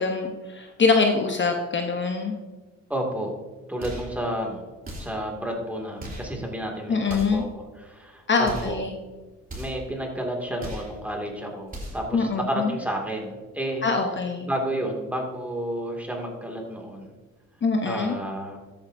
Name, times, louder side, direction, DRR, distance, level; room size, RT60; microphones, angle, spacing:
voice 1, 0.0-2.4 6.9-7.4 8.3-8.9 12.1-12.7 13.8-14.5 17.6-18.2, left 4 dB, 40° left, 3 dB, 1.0 m, -24 dB
voice 2, 2.9-3.3 3.7-4.7 5.0-8.8 9.6-13.8 14.4-17.1 17.8-18.6, right 1 dB, 5° right, 0 dB, 2.3 m, -31 dB
sound 1, 3.8-4.2 4.8-5.3 6.0-6.4 7.0-7.5 8.4-8.8 9.5-9.9 10.6-11.0 11.7-12.1, equal, 30° right, 3.3 m, -37 dB
13.5 x 8.9 x 2.7 m, 1.3 s
cardioid pair, 90°, 30 cm